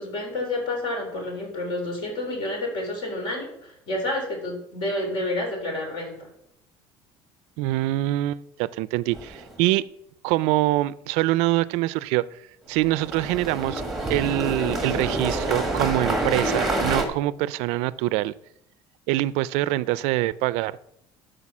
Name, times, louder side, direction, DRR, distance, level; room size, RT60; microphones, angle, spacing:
voice 1, 0.0-6.3, left 1 dB, 50° left, 2 dB, 3.8 m, -29 dB
voice 2, 7.6-9.8 10.2-12.3 12.7-13.8 14.1-18.3 19.1-20.8, right 17 dB, 80° right, 18 dB, 0.4 m, -24 dB
sound 1, 9.1-9.6 12.8-17.0, right 2 dB, ahead, 1.5 m, -27 dB
12.5 x 5.1 x 6.1 m, 0.76 s
cardioid pair, 165°, 11 cm